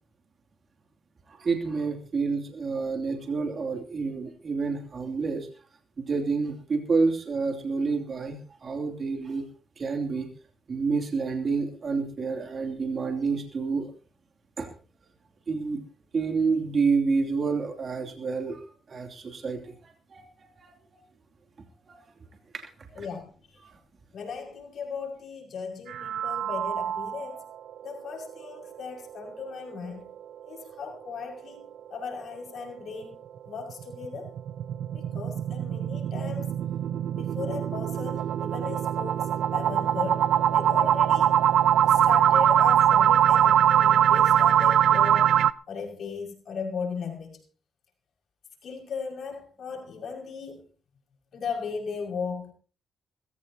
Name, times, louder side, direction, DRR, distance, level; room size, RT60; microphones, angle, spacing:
voice 1, 1.3-5.5 6.0-9.5 9.8-10.3 10.7-13.9 14.6-14.7 15.5-15.8 16.1-18.6 18.9-20.2 20.6-20.7 21.9-22.0 22.5-23.1 23.6-23.7, right 4 dB, 45° right, 2.9 m, -29 dB
voice 2, 23.0-23.3 24.1-27.4 27.8-30.1 30.5-33.2 33.4-34.3 34.9-36.5 37.1-41.5 41.8-45.4 45.7-47.4 48.6-50.6 51.3-52.5, left 5 dB, 60° left, 5.9 m, -37 dB
sound 1, 25.9-27.4 27.8-27.9 28.3-28.4 28.8-28.9 33.7-45.5, right 10 dB, 75° right, 0.6 m, -22 dB
21.0 x 16.0 x 2.9 m
cardioid pair, 90°, 0 cm